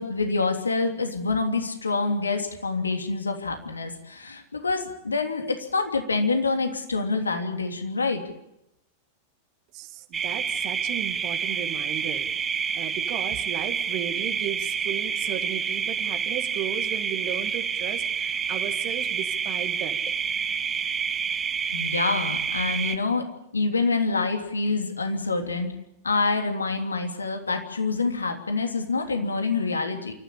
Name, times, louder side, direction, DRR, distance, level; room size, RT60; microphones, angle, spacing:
voice 1, 0.0-8.2 21.7-23.3 23.5-25.7 26.0-30.1, left 3 dB, 75° left, 5 dB, 3.2 m, -26 dB
voice 2, 9.7-12.3 12.7-20.1, right 11 dB, 45° right, 7 dB, 2.1 m, -35 dB
sound 1, 10.1-22.9, right 7 dB, 20° right, 1.5 m, -28 dB
28.0 x 15.0 x 8.6 m, 0.82 s
figure-of-eight pair, 90°, 0 cm